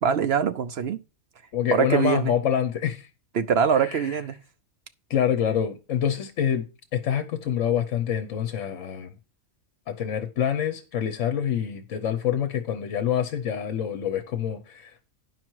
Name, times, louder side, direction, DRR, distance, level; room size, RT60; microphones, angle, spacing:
voice 1, 0.0-1.0 1.7-2.3 3.3-4.4, right 7 dB, 60° right, 0.7 m, -23 dB
voice 2, 1.5-3.1 3.8-4.0 5.1-6.6 6.9-9.1 9.9-15.1, left 9 dB, 65° left, 1.2 m, -26 dB
9.6 x 6.1 x 4.6 m
omnidirectional pair, 1.4 m